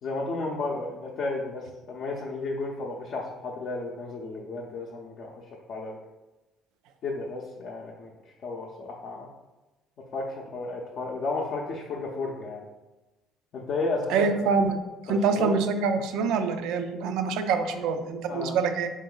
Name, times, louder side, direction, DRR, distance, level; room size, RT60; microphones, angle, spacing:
voice 1, 0.0-5.3 5.7-6.0 7.0-8.1 8.4-9.3 10.1-12.6 13.5-14.5 15.1-15.6 18.3-18.6, left 3 dB, 60° left, -2 dB, 0.5 m, -33 dB
voice 2, 14.1-14.8 15.1-18.9, right 5 dB, 75° right, 7 dB, 0.4 m, -25 dB
3.8 x 2.6 x 3.8 m, 1.1 s
supercardioid pair, 80°, 0 cm